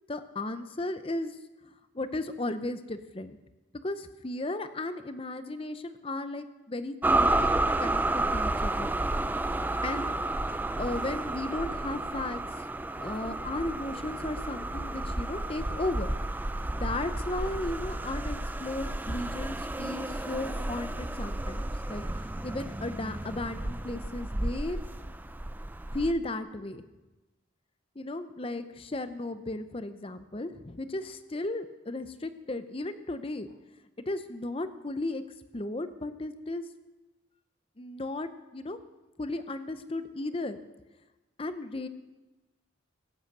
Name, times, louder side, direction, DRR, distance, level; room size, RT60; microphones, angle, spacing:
voice 1, 0.1-1.4 1.6-3.4 3.8-7.5 7.8-8.9 9.8-10.4 10.7-12.4 13.0-16.3 16.7-21.6 21.9-22.0 22.4-24.8 25.9-26.8 28.0-33.5 34.1-35.2 35.5-36.6 37.8-38.8 39.2-40.6 41.4-41.9, left 2 dB, 25° left, 11 dB, 0.7 m, -35 dB
sound 1, 7.0-26.1, right 2 dB, 10° right, 0.4 m, -31 dB
16.5 x 7.9 x 6.7 m, 1.1 s
head